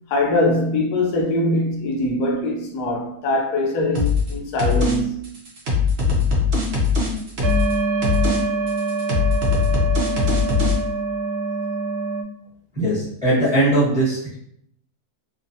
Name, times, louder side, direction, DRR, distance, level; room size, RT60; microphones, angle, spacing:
voice 1, 0.1-5.3, left 1 dB, 85° left, 1.2 m, -22 dB
sound 1, 3.9-4.3 4.6-5.0 5.2-7.7 8.0-8.4 8.7-10.8, left 5 dB, 60° right, 0.7 m, -20 dB
sound 2, 7.4-12.2, right 4 dB, 75° right, 1.0 m, -25 dB
voice 2, 12.7-14.2, right 1 dB, 5° right, 0.9 m, -19 dB
3.0 x 2.0 x 2.6 m
omnidirectional pair, 1.7 m